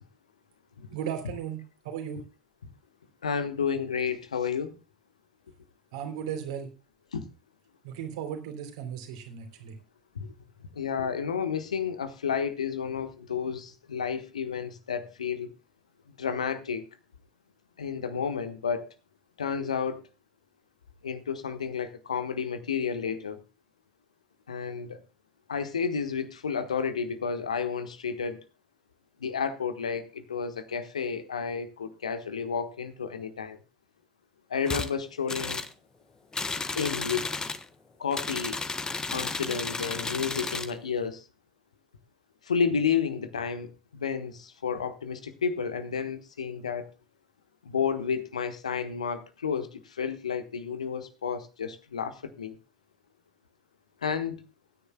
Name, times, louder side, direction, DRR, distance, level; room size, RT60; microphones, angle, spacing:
voice 1, 0.9-1.6 1.8-2.2 5.9-6.7 7.8-9.7, right 8 dB, 65° right, 3.2 m, -36 dB
voice 2, 3.2-4.8 7.1-7.2 10.1-10.3 10.7-15.5 16.2-16.8 17.8-18.9 19.4-20.0 21.0-23.4 24.5-25.0 25.5-28.4 29.2-33.6 34.5-35.6 36.7-37.3 38.0-38.6 39.1-41.2 42.4-46.9 47.6-52.6 54.0-54.4, left 6 dB, 80° left, 1.3 m, -31 dB
sound 1, 34.7-34.9 35.3-35.7 36.3-37.6 38.1-40.7, left 4 dB, 20° left, 1.3 m, -33 dB
24.0 x 10.0 x 2.2 m
figure-of-eight pair, 70°, 4 cm